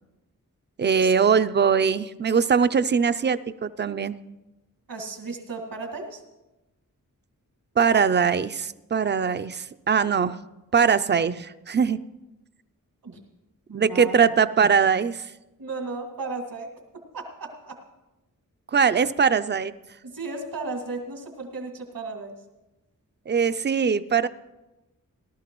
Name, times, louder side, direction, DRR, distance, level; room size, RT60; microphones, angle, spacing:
voice 1, 0.8-4.2 7.8-10.4 10.7-12.0 13.7-15.3 18.7-19.7 23.3-24.3, right 6 dB, 35° right, 13 dB, 0.4 m, -21 dB
voice 2, 4.9-6.2 13.0-13.2 13.7-14.3 15.6-17.8 20.0-22.4, right 3 dB, 85° right, 1 dB, 2.2 m, -35 dB
17.5 x 12.5 x 3.0 m, 1.0 s
wide cardioid pair, 85°, 34 cm